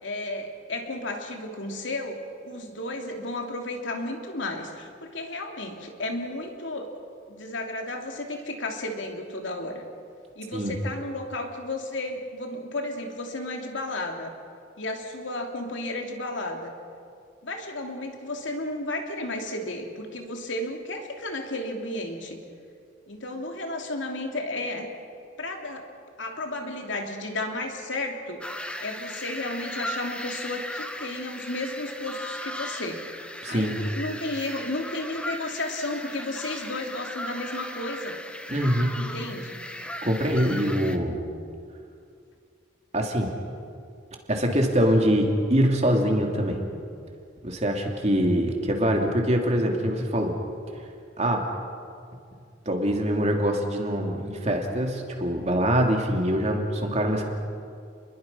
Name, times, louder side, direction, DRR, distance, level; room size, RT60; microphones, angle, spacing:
voice 1, 0.0-6.9 7.3-9.8 10.4-14.3 14.8-16.7 17.4-22.4 23.1-24.9 25.4-25.8 26.2-28.4 28.8-33.1 33.5-38.2 38.9-39.6, left 2 dB, 75° left, 3 dB, 2.9 m, -33 dB
sound 1, 28.4-41.0, left 1 dB, 5° left, 1.0 m, -37 dB
voice 2, 33.4-33.8 38.5-39.0 40.0-41.2 42.9-43.3 44.3-46.6 47.4-50.4 51.2-51.4 52.6-57.3, equal, 35° right, 2 dB, 2.9 m, -24 dB
30.0 x 22.0 x 5.7 m, 2.4 s
head